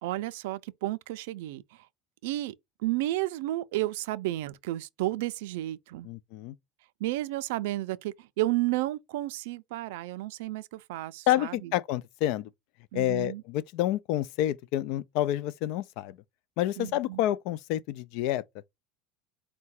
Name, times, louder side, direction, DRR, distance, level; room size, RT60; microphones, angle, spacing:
voice 1, 0.0-1.9 2.2-2.5 2.8-6.1 7.0-11.7 12.9-13.4 16.8-17.2, right 16 dB, 85° right, 0.3 m, -32 dB
voice 2, 6.0-6.6 11.3-12.5 12.9-16.2 16.6-18.4, left 13 dB, 60° left, 0.3 m, -29 dB
4.6 x 2.2 x 4.2 m
cardioid pair, 165°, 0 cm